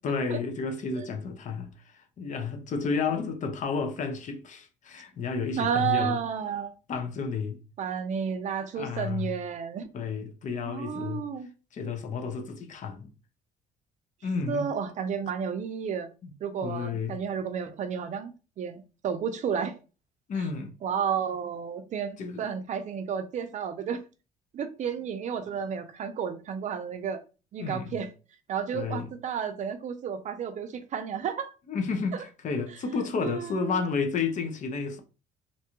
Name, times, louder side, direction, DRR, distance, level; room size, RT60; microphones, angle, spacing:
voice 1, 0.0-6.2 6.9-7.6 8.8-9.4 9.9-11.2 11.7-13.1 14.2-14.7 16.2-16.3 16.6-17.2 20.3-20.7 22.2-22.5 27.6-28.0 28.7-29.1 31.7-35.0, left 5 dB, 45° left, 0.6 m, -31 dB
voice 2, 5.6-6.7 7.8-9.9 10.7-11.5 14.5-16.1 16.4-19.8 20.8-24.0 24.5-27.2 27.5-28.1 28.5-31.5 32.1-32.2 33.2-33.8, right 7 dB, 45° right, 0.5 m, -32 dB
2.6 x 2.2 x 2.9 m
cardioid pair, 110°, 17 cm